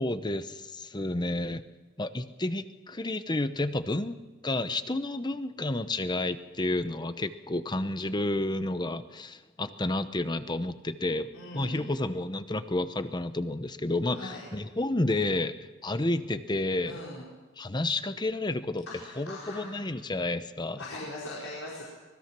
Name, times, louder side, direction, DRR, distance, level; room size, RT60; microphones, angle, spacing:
voice 1, 0.0-1.6 2.0-4.2 4.4-15.5 15.8-17.0 17.6-18.9 19.2-20.8, left 2 dB, 20° left, 11 dB, 0.9 m, -30 dB
voice 2, 11.3-11.9 14.1-14.4 16.8-17.2 18.9-19.7 20.8-21.8, left 2 dB, 85° left, -5 dB, 4.9 m, -40 dB
25.0 x 20.0 x 6.1 m, 1.3 s
head